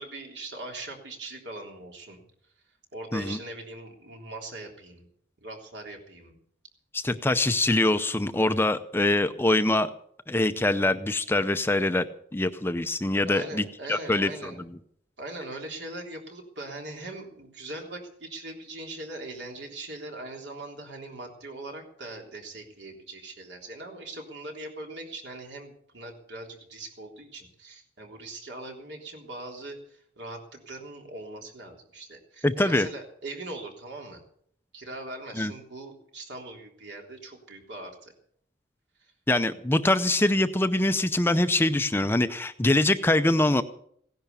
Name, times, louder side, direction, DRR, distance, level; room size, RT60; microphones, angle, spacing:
voice 1, 0.0-2.2 2.9-5.1 5.4-6.4 13.3-14.6 15.2-34.2 34.7-38.1 39.0-39.1, right 2 dB, 65° right, 1 dB, 3.5 m, -41 dB
voice 2, 6.9-9.9 10.3-12.1 12.3-13.6 13.9-14.3 32.4-32.9 35.4-35.5 39.3-43.6, left 2 dB, 10° left, 10 dB, 0.5 m, -24 dB
16.5 x 10.5 x 6.9 m, 0.66 s
head